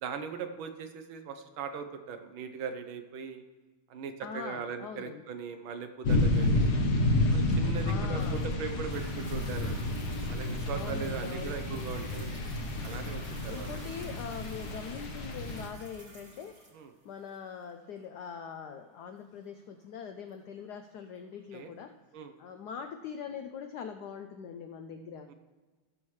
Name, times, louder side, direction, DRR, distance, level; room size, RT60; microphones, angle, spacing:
voice 1, 0.0-3.4 3.9-6.8 7.3-9.7 10.3-12.3 12.8-13.7 16.7-16.9 21.5-21.7 22.1-22.3 25.3-25.4, right 6 dB, 70° right, 8 dB, 1.5 m, -39 dB
voice 2, 4.2-5.2 7.9-8.5 10.7-11.6 13.5-16.5 17.0-21.9 22.4-25.3, left 7 dB, 80° left, 6 dB, 0.9 m, -42 dB
sound 1, 6.0-15.7, left 1 dB, 55° left, 1.5 m, -30 dB
Toilet flush, 8.2-21.2 21.8-21.9, right 1 dB, 40° right, 2.3 m, -53 dB
17.0 x 7.1 x 3.2 m, 1.3 s
omnidirectional pair, 2.4 m